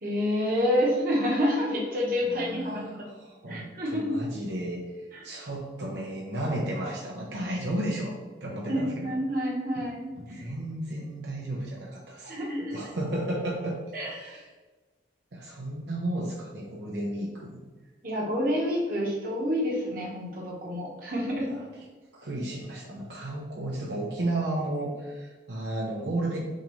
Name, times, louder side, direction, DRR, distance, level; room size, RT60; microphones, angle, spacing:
voice 1, 0.0-3.1 3.5-4.2 5.1-5.2 8.7-10.4 12.2-12.9 13.9-14.3 18.0-21.5, equal, 50° right, -3 dB, 1.1 m, -28 dB
voice 2, 2.3-8.1 8.4-9.1 9.7-9.8 10.2-13.8 14.1-14.5 15.3-17.6 21.4-21.6 22.1-26.4, right 1 dB, 80° right, -3 dB, 0.8 m, -33 dB
6.4 x 2.6 x 3.1 m, 1.3 s
head